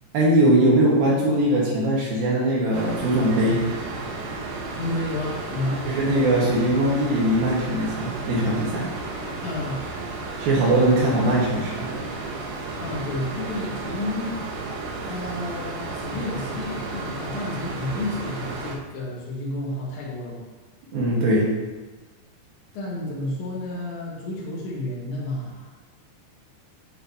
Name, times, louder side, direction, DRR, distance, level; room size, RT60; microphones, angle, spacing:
voice 1, 0.1-3.6 5.8-8.9 10.4-11.9 20.9-21.5, right 1 dB, 60° right, -4 dB, 2.7 m, -21 dB
sound 1, 2.7-18.8, right 3 dB, 90° right, 1.9 m, -33 dB
voice 2, 4.7-5.9 9.4-9.8 12.8-14.5 15.1-20.4 22.7-25.7, left 1 dB, 75° left, -6 dB, 3.7 m, -31 dB
8.9 x 6.7 x 2.8 m, 1.2 s
omnidirectional pair, 5.4 m